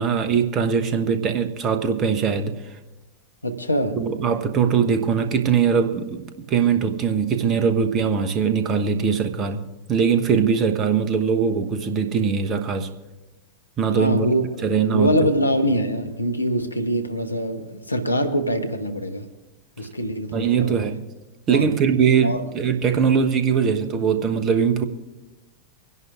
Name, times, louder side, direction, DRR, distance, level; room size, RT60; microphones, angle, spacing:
voice 1, 0.0-2.6 4.0-12.9 13.8-14.3 14.6-15.3 20.3-21.0 21.5-24.8, right 6 dB, 30° right, 1.0 m, -21 dB
voice 2, 3.4-4.0 13.9-19.3 19.8-20.7 21.5-21.8 22.2-22.4, equal, 85° left, 0.9 m, -24 dB
25.0 x 11.0 x 2.5 m
figure-of-eight pair, 90°, 0 cm